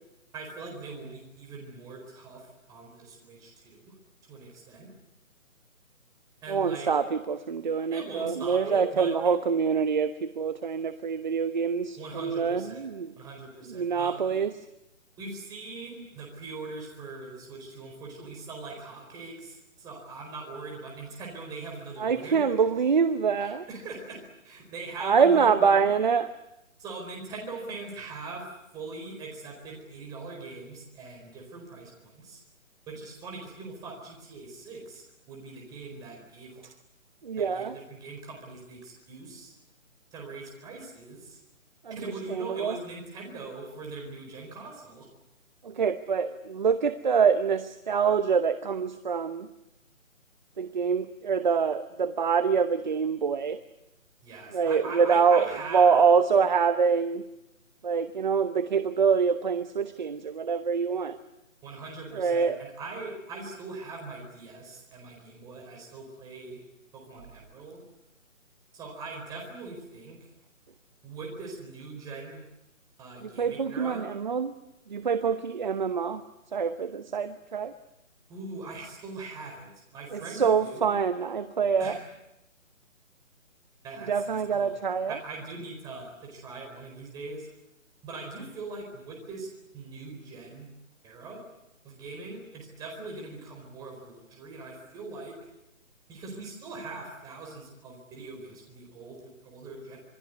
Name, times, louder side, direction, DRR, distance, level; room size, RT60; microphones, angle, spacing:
voice 1, 0.3-3.9 4.2-4.9 6.4-6.9 7.9-9.3 12.0-12.9 13.2-14.4 15.2-22.4 23.4-25.9 26.8-32.4 32.9-36.6 37.4-39.5 40.1-41.4 41.9-45.1 54.2-55.9 61.6-66.6 66.9-67.8 68.7-70.2 71.0-72.4 73.0-74.0 78.3-80.9 81.8-82.1 83.8-84.8 85.1-87.5 88.0-90.7 91.0-91.4 91.8-95.4 96.1-100.0, right 3 dB, 10° right, 0 dB, 4.4 m, -41 dB
voice 2, 6.5-13.1 13.7-14.5 22.0-23.7 25.0-26.3 37.2-37.8 41.8-42.0 42.3-42.8 45.6-49.5 50.6-53.6 54.5-57.2 57.8-61.2 62.2-62.6 73.2-74.5 74.9-76.2 76.5-77.7 80.1-82.0 84.1-85.2, right 6 dB, 35° right, 11 dB, 1.0 m, -25 dB
27.0 x 21.5 x 9.4 m, 0.88 s
hypercardioid pair, 165°, 40 cm